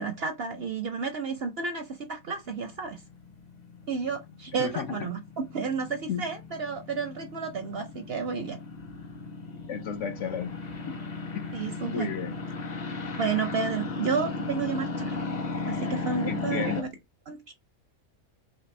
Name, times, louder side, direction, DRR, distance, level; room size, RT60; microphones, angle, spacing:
voice 1, 0.0-3.0 3.9-8.6 11.5-12.1 13.2-15.2 15.6-16.9 17.3-17.5, right 5 dB, 60° right, 0.7 m, -31 dB
sound 1, 2.2-16.8, left 3 dB, 40° left, 0.7 m, -36 dB
voice 2, 4.6-5.1 6.1-6.3 9.7-10.6 10.9-11.0 11.3-11.4 11.8-12.3 16.3-16.9, left 7 dB, 65° left, 1.0 m, -33 dB
4.2 x 2.7 x 3.1 m
omnidirectional pair, 1.5 m